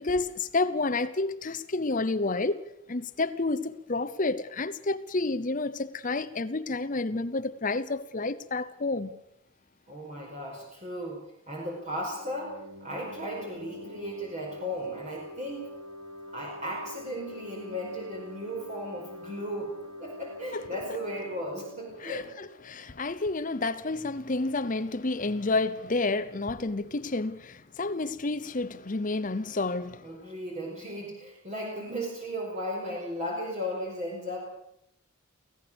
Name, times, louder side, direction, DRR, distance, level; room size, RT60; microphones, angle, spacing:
voice 1, 0.0-2.6 2.9-9.1 20.5-20.6 22.0-30.1, left 3 dB, 40° left, 0.8 m, -30 dB
voice 2, 9.9-15.7 16.3-22.3 30.0-34.4, equal, 35° right, 5.0 m, -36 dB
sound 1, 11.9-23.3, left 1 dB, 75° right, 3.1 m, -45 dB
24.5 x 16.5 x 7.0 m
head